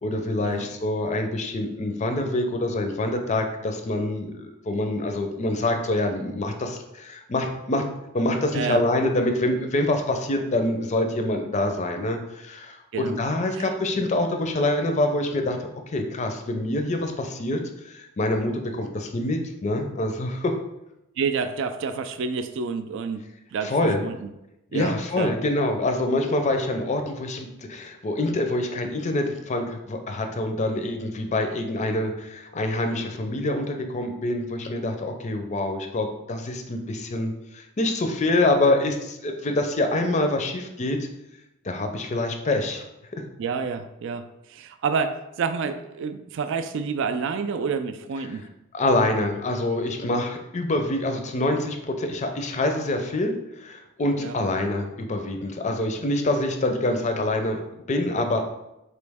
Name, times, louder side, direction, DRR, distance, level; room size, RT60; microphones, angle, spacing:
voice 1, 0.0-7.8 8.1-20.6 23.6-24.0 24.7-41.1 41.6-42.8 43.1-43.2 48.7-58.4, left 1 dB, 35° left, 5 dB, 0.5 m, -26 dB
voice 2, 21.2-23.2 23.5-23.7 24.0-24.3 24.7-25.3 43.4-48.4 54.2-54.4, right 5 dB, 65° right, 9 dB, 0.3 m, -29 dB
4.1 x 3.1 x 3.4 m, 0.89 s
head